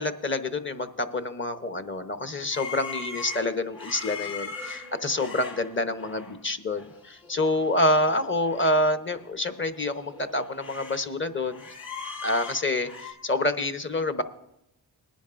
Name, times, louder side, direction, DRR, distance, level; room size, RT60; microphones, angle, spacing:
voice 1, 0.0-11.6 12.2-14.2, left 2 dB, 25° left, 9 dB, 1.0 m, -27 dB
sound 1, 2.5-6.4 6.7-7.0 7.2-8.7 9.1-9.2 9.7-11.1 11.3-13.1, left 4 dB, 70° left, 2.7 m, -40 dB
19.5 x 10.5 x 2.6 m, 0.85 s
cardioid pair, 50°, 46 cm